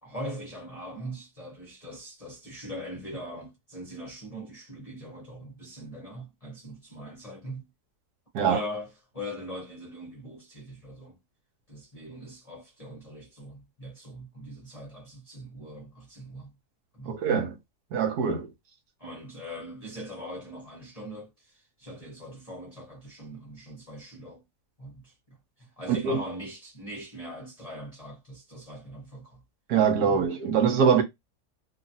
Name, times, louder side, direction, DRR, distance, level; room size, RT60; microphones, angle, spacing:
voice 1, 0.0-7.7 8.4-11.2 11.7-16.5 16.9-17.2 19.0-24.4 24.8-25.1 25.6-29.4 30.0-30.2, equal, 35° left, 0.7 m, -41 dB
voice 2, 17.1-17.5 17.9-18.5 25.9-26.2 29.7-31.0, right 6 dB, 75° right, 1.1 m, -23 dB
2.8 x 2.5 x 2.6 m
omnidirectional pair, 1.8 m